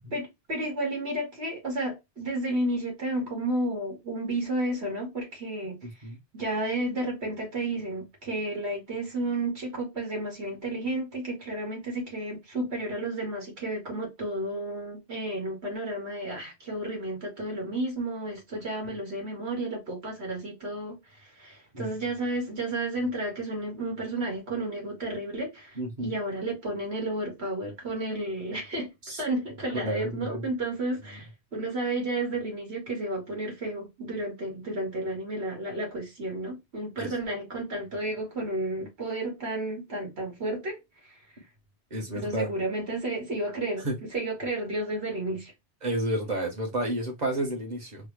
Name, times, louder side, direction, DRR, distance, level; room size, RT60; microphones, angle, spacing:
voice 1, 0.1-5.8 6.3-28.9 29.2-40.8 41.0-41.2 42.1-45.5, right 1 dB, 65° right, 2.0 m, -32 dB
voice 2, 25.8-26.2 29.1-29.2 29.7-30.5 37.0-37.1 41.9-42.5 43.8-44.0 45.8-48.1, right 1 dB, 40° right, 1.2 m, -31 dB
4.0 x 2.1 x 3.1 m
omnidirectional pair, 1.2 m